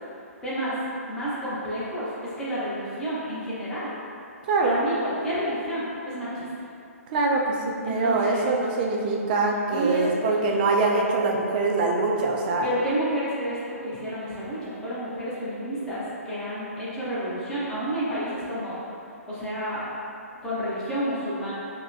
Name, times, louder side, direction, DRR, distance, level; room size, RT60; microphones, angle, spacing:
voice 1, 0.4-0.8 1.1-3.9 4.6-6.5 7.8-8.4 9.5-10.0 10.4-10.5 12.6-18.8 19.0-19.8 20.4-21.5, right 1 dB, 10° left, -10 dB, 0.8 m, -30 dB
voice 2, 4.5-4.8 7.1-12.7, right 3 dB, 35° right, 0 dB, 0.4 m, -24 dB
5.1 x 2.2 x 2.6 m, 2.6 s
figure-of-eight pair, 125°, 8 cm